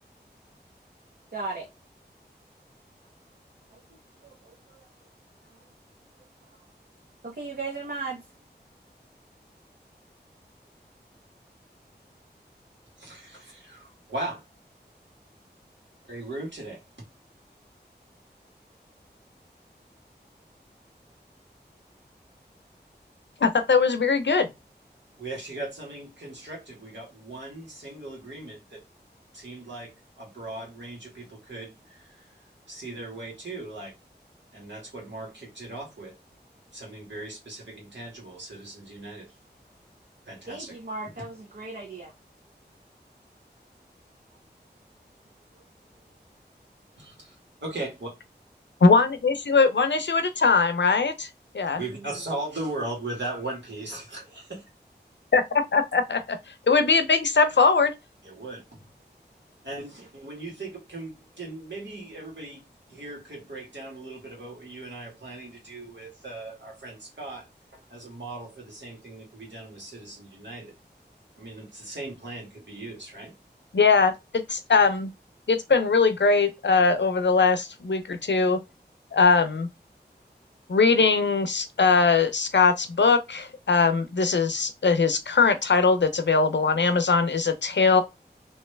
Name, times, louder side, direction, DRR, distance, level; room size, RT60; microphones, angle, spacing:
voice 1, 1.3-1.7 3.7-3.8 4.2-4.8 7.2-8.3 40.5-42.1 45.5-45.6, right 3 dB, 55° right, 0.8 m, -36 dB
voice 2, 13.0-14.4 16.0-16.8 25.2-28.8 29.3-32.2 32.7-33.9 34.5-36.2 36.7-39.3 40.3-40.7 41.1-41.3 47.0-47.4 47.6-48.1 51.6-54.6 58.2-59.0 59.6-62.6 62.9-67.5 67.7-70.7 71.4-73.4, right 2 dB, 85° right, 1.8 m, -38 dB
voice 3, 23.4-24.5 48.8-51.3 51.5-51.8 55.3-56.4 56.7-57.9 73.7-75.1 75.5-78.6 79.1-79.7 80.7-88.0, left 4 dB, 80° left, 0.6 m, -21 dB
3.1 x 2.9 x 3.2 m
wide cardioid pair, 55°, 18 cm